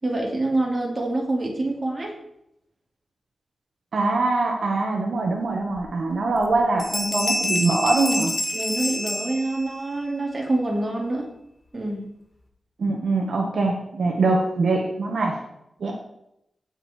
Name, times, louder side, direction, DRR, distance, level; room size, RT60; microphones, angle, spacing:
voice 1, 0.0-2.1 8.5-11.3 11.7-12.1, right 2 dB, 30° right, -2 dB, 3.3 m, -26 dB
voice 2, 3.9-8.4 12.8-15.4 15.8-15.9, right 3 dB, 65° right, 1 dB, 1.8 m, -23 dB
sound 1, 5.8-5.9 6.3-6.5 6.8-9.9, left 1 dB, 30° left, 2.0 m, -27 dB
17.5 x 7.0 x 4.7 m, 0.79 s
wide cardioid pair, 150°, 0 cm